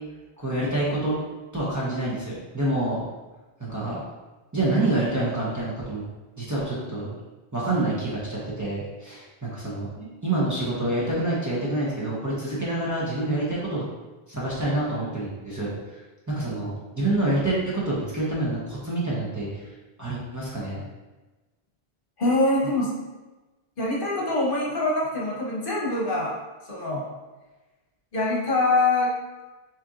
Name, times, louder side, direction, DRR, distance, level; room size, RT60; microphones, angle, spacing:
voice 1, 0.4-1.1 1.5-3.0 3.6-4.0 4.5-6.0 6.4-7.1 7.5-13.9 14.3-15.7 16.3-19.7 20.0-20.8, right 2 dB, 20° right, -8 dB, 1.0 m, -27 dB
voice 2, 22.2-22.9 23.8-26.4 26.7-27.1 28.1-29.1, left 2 dB, 55° left, -4 dB, 1.1 m, -24 dB
6.6 x 3.0 x 2.5 m, 1.2 s
omnidirectional pair, 1.1 m